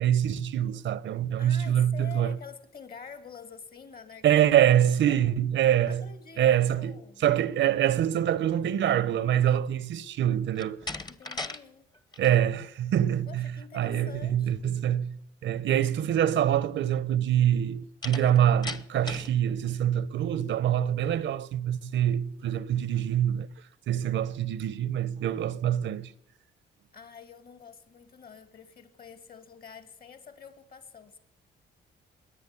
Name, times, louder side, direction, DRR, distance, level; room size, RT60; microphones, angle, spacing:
voice 1, 0.0-2.4 4.2-6.1 6.4-10.9 12.2-26.1, right 10 dB, 70° right, 0.8 m, -25 dB
voice 2, 1.4-4.6 5.0-5.4 5.9-7.3 11.1-11.9 13.3-14.7 26.9-31.2, left 6 dB, 50° left, 2.6 m, -47 dB
Slam, 10.5-11.6 11.9-12.4 18.0-19.4, left 2 dB, 20° left, 1.1 m, -37 dB
21.5 x 8.9 x 7.1 m
cardioid pair, 90°, 20 cm